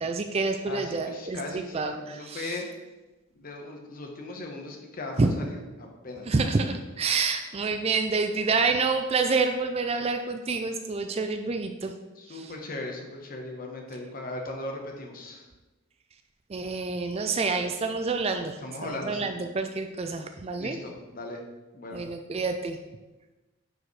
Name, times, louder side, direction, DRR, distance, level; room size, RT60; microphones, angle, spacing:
voice 1, 0.0-2.6 5.2-5.3 6.3-11.9 12.3-12.5 16.5-18.6 18.9-20.8 21.9-22.8, right 4 dB, 30° right, 6 dB, 0.3 m, -28 dB
voice 2, 0.6-2.6 3.3-6.3 12.2-15.5 18.6-19.3 20.6-21.4 21.7-22.0, left 2 dB, 40° left, 1 dB, 1.0 m, -38 dB
9.8 x 4.9 x 3.2 m, 1.1 s
head